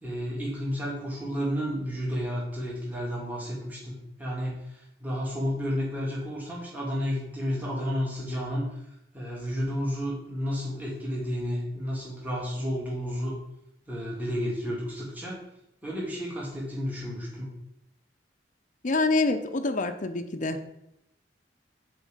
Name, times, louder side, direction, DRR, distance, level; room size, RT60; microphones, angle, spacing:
voice 1, 0.0-8.8 9.1-13.4 13.9-15.4 15.8-17.5, equal, 10° right, -5 dB, 2.0 m, -31 dB
voice 2, 18.8-20.6, left 3 dB, 45° left, 8 dB, 0.7 m, -26 dB
8.3 x 4.4 x 5.1 m, 0.83 s
head